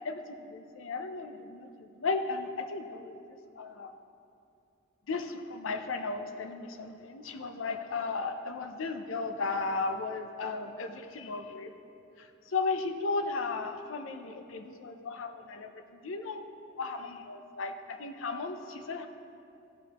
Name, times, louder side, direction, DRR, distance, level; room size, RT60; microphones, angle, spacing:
voice 1, 0.0-3.2 3.6-3.9 5.1-11.7 12.2-16.4 16.8-19.1, left 3 dB, 85° left, 7 dB, 0.6 m, -35 dB
14.5 x 5.2 x 2.9 m, 2.6 s
head